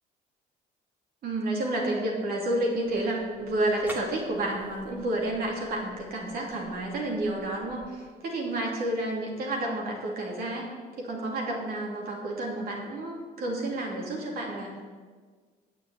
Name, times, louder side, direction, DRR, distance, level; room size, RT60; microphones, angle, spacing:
voice 1, 1.2-10.6 11.0-15.0, right 1 dB, 65° right, -1 dB, 2.8 m, -30 dB
sound 1, 2.8-7.9, equal, 10° right, 2.1 m, -49 dB
8.7 x 7.0 x 8.4 m, 1.5 s
cardioid pair, 110°, 17 cm